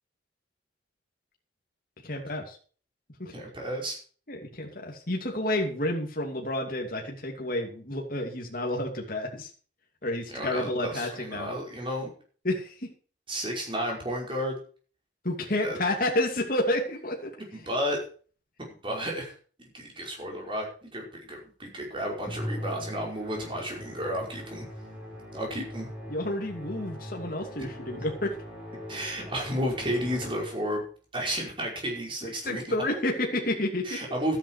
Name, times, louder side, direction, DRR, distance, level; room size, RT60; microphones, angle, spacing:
voice 1, 2.0-2.6 3.2-3.3 4.3-9.5 10.0-11.5 12.4-12.9 15.2-17.3 26.1-28.3 32.4-34.0, left 1 dB, 50° left, 1 dB, 2.7 m, -30 dB
voice 2, 3.3-4.0 10.3-12.1 13.3-14.6 15.6-15.8 17.5-18.0 18.8-19.3 19.7-24.6 25.3-25.9 27.6-27.7 28.9-30.8 31.1-32.6 33.8-34.4, equal, 25° right, 0 dB, 5.3 m, -32 dB
Musical instrument, 22.3-30.8, equal, 5° right, 4.3 m, -40 dB
13.0 x 10.0 x 4.8 m, 0.40 s
head